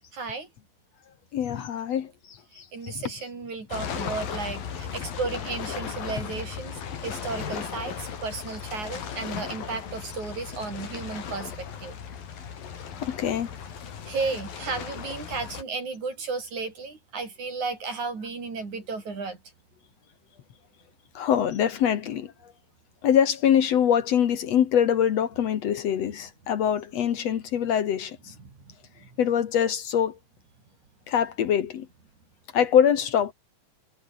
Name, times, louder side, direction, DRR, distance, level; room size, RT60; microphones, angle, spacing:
voice 1, 0.1-0.5 2.7-12.0 14.1-19.4 28.4-28.7, right 4 dB, 55° right, 6.4 m, -34 dB
voice 2, 1.3-3.0 13.0-13.5 21.2-22.3 23.0-28.3 29.2-30.2 31.1-31.9 32.5-33.3, left 9 dB, 60° left, 2.1 m, -24 dB
sound 1, 3.7-15.6, left 7 dB, 85° left, 5.0 m, -36 dB
omnidirectional pair, 4.0 m